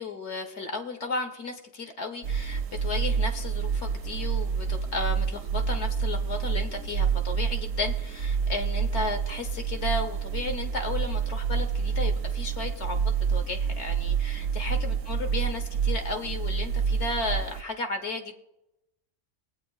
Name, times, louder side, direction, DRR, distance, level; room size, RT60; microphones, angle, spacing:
voice 1, 0.0-18.3, left 3 dB, 65° left, 4 dB, 1.4 m, -34 dB
sound 1, 2.2-17.6, right 6 dB, 90° right, 1.0 m, -28 dB
18.0 x 8.6 x 2.4 m, 0.87 s
omnidirectional pair, 1.3 m